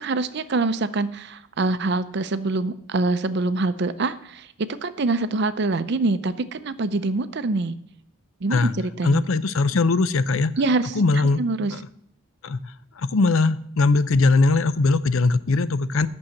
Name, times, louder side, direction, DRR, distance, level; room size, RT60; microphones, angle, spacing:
voice 1, 0.0-7.7 8.4-9.2 10.6-11.7, right 3 dB, 50° right, 12 dB, 0.5 m, -25 dB
voice 2, 9.0-10.5 11.0-11.4 11.7-11.8 12.4-12.6 13.0-16.1, left 3 dB, 65° left, 15 dB, 0.5 m, -20 dB
9.1 x 6.3 x 7.1 m, 0.70 s
head